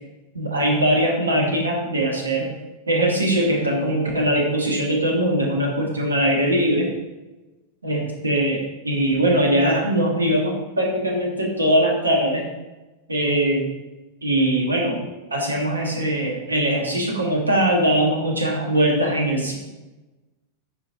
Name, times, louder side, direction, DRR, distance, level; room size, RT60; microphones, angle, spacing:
voice 1, 0.3-2.5 2.9-6.9 7.8-12.4 13.1-13.7 14.2-15.0 15.3-19.5, right 1 dB, 80° right, 0 dB, 1.6 m, -21 dB
8.9 x 5.4 x 3.8 m, 1.1 s
figure-of-eight pair, 90°, 0 cm